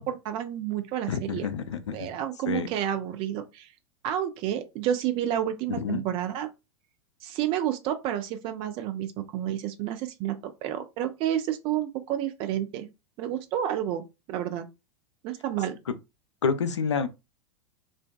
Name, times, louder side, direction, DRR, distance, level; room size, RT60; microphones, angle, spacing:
voice 1, 0.0-1.5 1.9-3.7 4.0-6.5 7.2-12.9 13.2-14.7 15.2-15.8, right 11 dB, 35° right, 0.4 m, -30 dB
voice 2, 1.1-2.1 2.5-2.7 5.7-6.0 16.4-17.1, left 6 dB, 75° left, 0.4 m, -28 dB
2.5 x 2.1 x 2.2 m
figure-of-eight pair, 90°, 15 cm